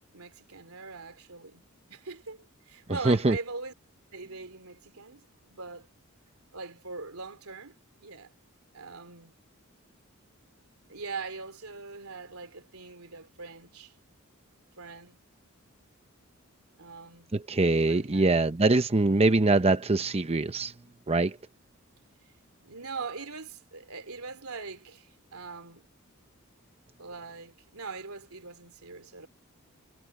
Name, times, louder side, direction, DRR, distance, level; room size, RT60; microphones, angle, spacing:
voice 1, 0.0-1.6 1.9-3.7 4.1-5.9 6.5-8.3 8.7-9.3 10.9-13.9 14.8-15.2 16.8-17.4 17.7-18.3 22.2-22.3 22.6-25.9 27.0-29.3, right 4 dB, 85° right, 3.1 m, -42 dB
voice 2, 3.0-3.4 17.3-20.7 21.1-21.4, right 2 dB, 30° right, 0.7 m, -23 dB
head